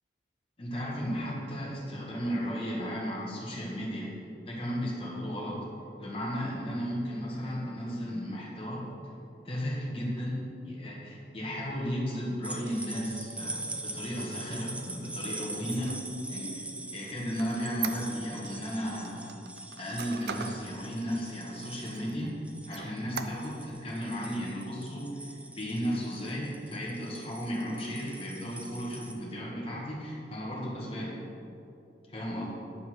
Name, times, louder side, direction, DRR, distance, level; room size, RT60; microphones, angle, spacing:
voice 1, 0.6-4.1 4.5-5.7 6.0-8.8 9.4-10.4 10.6-15.9 16.3-16.7 16.9-19.3 19.8-22.3 22.7-31.1 32.1-32.4, equal, 30° left, -4 dB, 1.9 m, -34 dB
sound 1, 12.4-29.1, right 2 dB, 10° right, 0.5 m, -43 dB
Squeak, 15.6-18.6 19.0-20.6 21.1-21.2 21.6-22.3 22.7-23.7, right 7 dB, 70° right, 0.5 m, -40 dB
10.0 x 5.7 x 6.1 m, 2.7 s
head